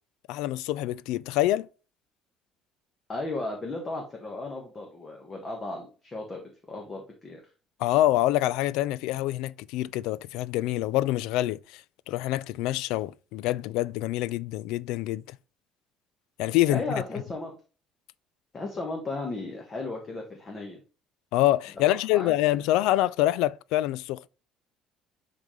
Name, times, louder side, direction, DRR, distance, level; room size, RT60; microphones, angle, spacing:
voice 1, 0.3-1.7 7.8-11.8 12.1-15.4 16.4-17.0 21.3-24.2, left 15 dB, 85° left, 0.3 m, -26 dB
voice 2, 3.1-6.4 6.7-7.4 16.7-17.5 18.5-20.8 21.8-22.3, left 2 dB, 20° left, 1.2 m, -35 dB
10.5 x 3.9 x 3.1 m
cardioid pair, 175°, 0 cm